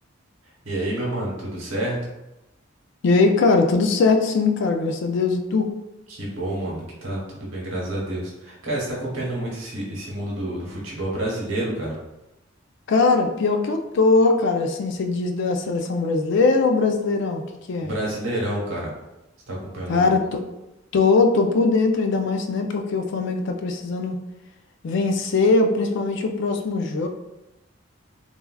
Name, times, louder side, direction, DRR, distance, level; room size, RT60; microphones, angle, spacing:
voice 1, 0.6-2.0 6.1-11.9 17.8-18.9 19.5-20.1, right 1 dB, 85° right, -4 dB, 1.0 m, -29 dB
voice 2, 3.0-5.7 12.9-17.4 17.7-17.9 19.9-20.4 20.9-24.2 24.8-27.1, left 3 dB, 65° left, 5 dB, 0.3 m, -20 dB
3.3 x 2.3 x 2.2 m, 0.95 s
head